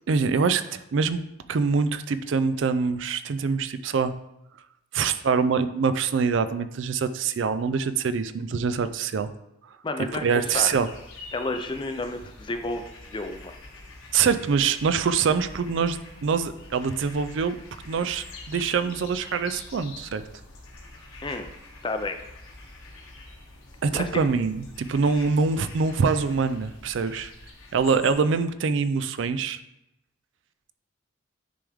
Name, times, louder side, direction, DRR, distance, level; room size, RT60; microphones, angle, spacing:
voice 1, 0.1-1.2 1.5-4.1 4.9-9.3 10.2-10.9 14.1-17.6 17.8-20.2 23.8-27.3 27.7-29.6, right 5 dB, 60° right, 12 dB, 0.4 m, -24 dB
voice 2, 9.8-10.3 10.5-10.7 11.3-12.9 13.1-13.6 21.2-21.5 21.8-22.2 23.9-24.2, left 2 dB, 25° left, 7 dB, 0.5 m, -30 dB
sound 1, 10.4-28.1, left 3 dB, 85° left, 1.3 m, -45 dB
10.0 x 3.5 x 3.4 m, 0.85 s
head